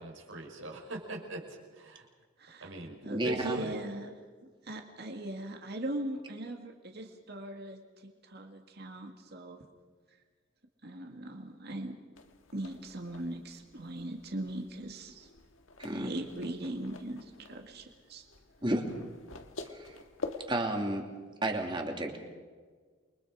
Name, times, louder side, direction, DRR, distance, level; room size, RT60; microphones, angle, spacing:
voice 1, 0.0-1.4 1.7-2.0 2.6-3.7, right 2 dB, 75° right, 1 dB, 5.2 m, -41 dB
voice 2, 2.4-2.7 3.0-4.1 4.6-9.6 10.8-11.9 12.5-15.3 15.9-18.2, right 1 dB, 50° right, 3 dB, 2.1 m, -40 dB
voice 3, 3.1-3.6 15.8-16.1 18.6-18.8 19.7-20.0 20.5-21.1 21.4-22.2, right 1 dB, 25° right, 2 dB, 2.9 m, -31 dB
sound 1, 12.1-20.5, left 3 dB, 80° left, 1.8 m, -47 dB
29.0 x 23.5 x 5.0 m, 1.5 s
head